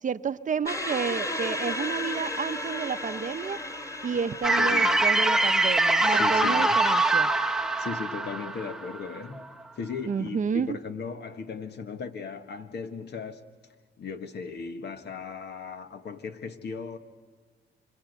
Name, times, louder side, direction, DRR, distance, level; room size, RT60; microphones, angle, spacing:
voice 1, 0.0-3.6 4.0-7.3 10.1-10.7, right 6 dB, 40° right, 0.8 m, -30 dB
sound 1, 0.7-7.8, left 1 dB, 15° left, 2.6 m, -35 dB
sound 2, 4.4-9.5, right 2 dB, ahead, 0.9 m, -23 dB
voice 2, 4.6-5.0 6.0-6.8 7.8-9.5 9.7-13.4 14.0-17.0, left 5 dB, 60° left, 1.7 m, -37 dB
27.0 x 25.5 x 8.2 m
cardioid pair, 90°, 20 cm